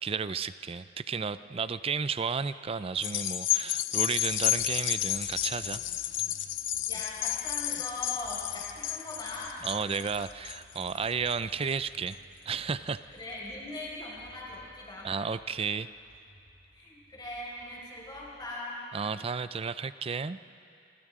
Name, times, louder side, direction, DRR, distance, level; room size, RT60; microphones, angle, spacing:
voice 1, 0.0-5.8 9.6-12.2 12.5-13.0 15.0-15.9 18.9-20.4, right 5 dB, 30° right, 14 dB, 0.4 m, -33 dB
sound 1, 3.0-11.6 12.1-12.2, left 12 dB, 90° left, 0.8 m, -31 dB
sound 2, 4.0-18.2, equal, 60° right, 6.8 m, -57 dB
voice 2, 6.9-9.7 13.1-15.1 16.7-18.9, left 2 dB, 25° left, -5 dB, 5.3 m, -40 dB
27.5 x 25.5 x 3.7 m, 2.5 s
head